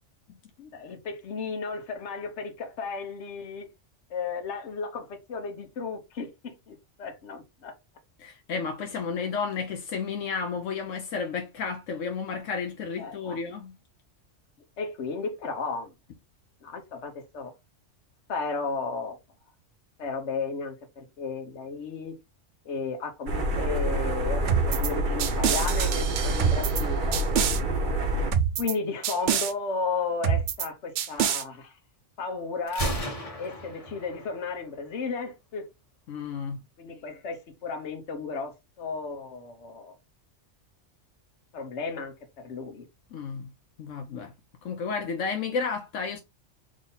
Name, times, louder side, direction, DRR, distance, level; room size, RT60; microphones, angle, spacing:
voice 1, 0.7-3.7 4.1-7.7 13.0-13.4 14.8-15.9 16.6-17.5 18.3-19.2 20.0-22.2 22.6-27.2 28.6-31.8 32.2-33.0 33.4-35.7 36.8-39.9 41.5-42.9, left 4 dB, 70° left, 1.3 m, -34 dB
voice 2, 8.2-13.7 27.5-27.7 36.1-36.6 43.1-43.5 43.8-44.3 44.6-46.2, left 5 dB, 85° left, 1.0 m, -32 dB
sound 1, 23.3-28.3, right 1 dB, 45° right, 1.0 m, -27 dB
sound 2, 24.5-24.9 25.2-26.8 27.1-27.6 28.3-28.7 29.0-29.5 30.2-30.7 31.0-31.4, right 8 dB, 75° right, 0.9 m, -26 dB
Gunshot gunfire, 32.7-34.6, right 1 dB, 30° left, 1.4 m, -34 dB
3.8 x 3.1 x 3.9 m
omnidirectional pair, 1.2 m